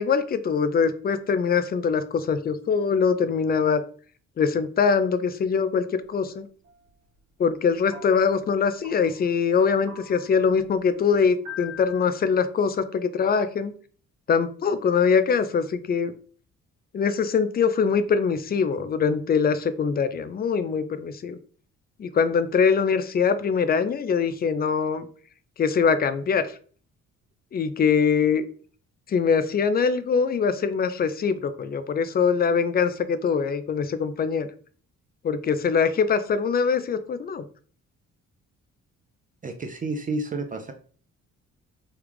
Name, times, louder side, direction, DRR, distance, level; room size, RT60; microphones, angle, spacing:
voice 1, 0.0-3.8 4.4-6.5 7.4-13.7 14.3-16.1 16.9-21.4 22.0-25.1 25.6-26.4 27.5-28.4 29.1-34.5 35.2-37.4, left 6 dB, 30° left, 12 dB, 0.4 m, -23 dB
sound 1, 6.7-6.8 7.9-8.4 8.8-9.2 9.9-10.5 11.4-12.1, left 6 dB, 70° right, 1.1 m, -42 dB
voice 2, 39.4-40.7, right 2 dB, 25° right, 6 dB, 0.5 m, -30 dB
3.1 x 2.3 x 3.4 m, 0.43 s
cardioid pair, 90°, 30 cm